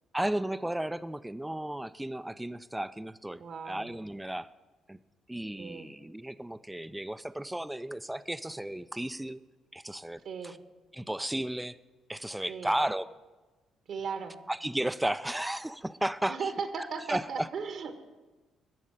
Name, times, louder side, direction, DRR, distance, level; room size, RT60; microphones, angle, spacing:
voice 1, 0.1-4.5 4.9-5.0 5.3-9.4 9.7-10.6 10.9-11.7 12.1-13.1 14.5-17.5, right 1 dB, 10° right, 14 dB, 0.5 m, -34 dB
voice 2, 3.4-3.9 5.6-5.9 10.2-10.5 12.5-12.7 13.9-14.4 16.3-18.0, right 5 dB, 60° right, 8 dB, 1.5 m, -36 dB
12.0 x 7.3 x 8.9 m, 1.2 s
hypercardioid pair, 45°, 0 cm